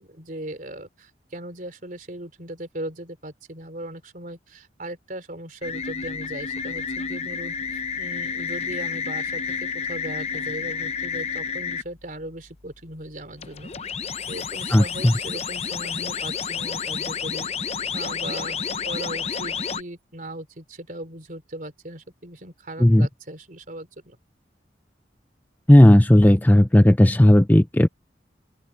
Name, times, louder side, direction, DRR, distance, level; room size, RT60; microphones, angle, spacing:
voice 1, 0.0-13.7 14.3-24.2, right 1 dB, 50° right, 3.7 m, -38 dB
sound 1, 5.6-11.8 13.4-19.8, left 6 dB, 35° left, 0.8 m, -30 dB
voice 2, 14.7-15.1 22.8-23.1 25.7-27.9, left 1 dB, 10° left, 0.5 m, -14 dB
open air
head